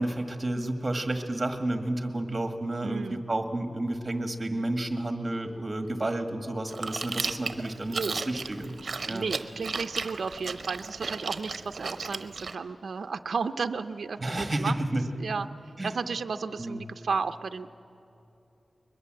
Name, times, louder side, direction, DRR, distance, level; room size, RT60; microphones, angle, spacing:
voice 1, 0.0-8.8 9.1-9.3 14.2-15.0 15.8-15.9 16.6-16.8, right 1 dB, 25° right, 6 dB, 1.7 m, -31 dB
voice 2, 2.8-3.3 7.9-8.2 8.8-14.8 15.2-15.5 15.8-17.7, right 5 dB, 75° right, 9 dB, 0.5 m, -33 dB
Chewing mastication, 6.7-12.6, right 4 dB, 55° right, 0.9 m, -35 dB
22.0 x 21.0 x 7.7 m, 2.8 s
wide cardioid pair, 115°, 0 cm